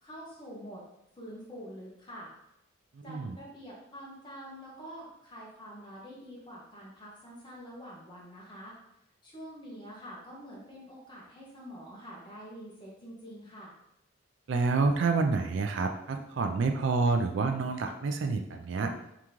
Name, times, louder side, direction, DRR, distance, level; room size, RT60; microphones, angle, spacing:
voice 1, 0.0-0.8 1.1-2.3 3.0-8.7 9.2-13.7, equal, 25° left, -5 dB, 1.2 m, -46 dB
voice 2, 2.9-3.4 14.5-18.9, right 4 dB, 60° right, 5 dB, 0.4 m, -28 dB
3.6 x 3.6 x 3.0 m, 0.81 s
head